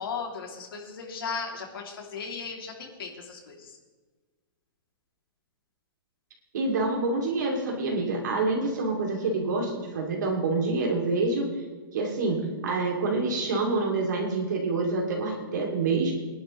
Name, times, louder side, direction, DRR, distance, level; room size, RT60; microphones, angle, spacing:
voice 1, 0.0-3.8, left 5 dB, 80° left, 0 dB, 2.8 m, -36 dB
voice 2, 6.5-11.5 11.9-16.1, right 3 dB, 55° right, -1 dB, 2.7 m, -27 dB
22.0 x 11.0 x 3.2 m, 1.4 s
hypercardioid pair, 180°, 12 cm